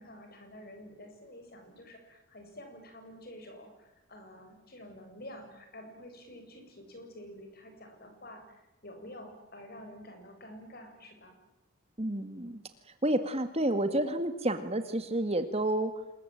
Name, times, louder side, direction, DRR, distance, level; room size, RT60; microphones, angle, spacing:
voice 1, 0.0-11.4, left 1 dB, 45° left, 5 dB, 7.7 m, -49 dB
voice 2, 12.0-12.6 13.0-15.9, right 1 dB, 30° right, 9 dB, 1.9 m, -30 dB
27.5 x 21.5 x 9.2 m, 0.93 s
head